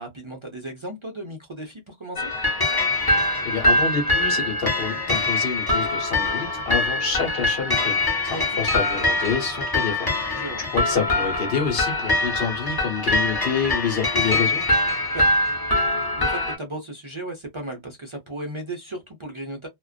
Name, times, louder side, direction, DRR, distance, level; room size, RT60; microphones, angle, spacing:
voice 1, 0.0-2.3 8.3-8.6 10.3-10.6 15.1-15.3 16.2-19.7, right 1 dB, 35° right, 0.5 m, -35 dB
sound 1, 2.2-16.6, left 2 dB, 25° left, 0.8 m, -23 dB
voice 2, 2.9-10.4 10.7-14.6, left 6 dB, 65° left, 1.1 m, -28 dB
2.4 x 2.2 x 2.4 m
omnidirectional pair, 1.1 m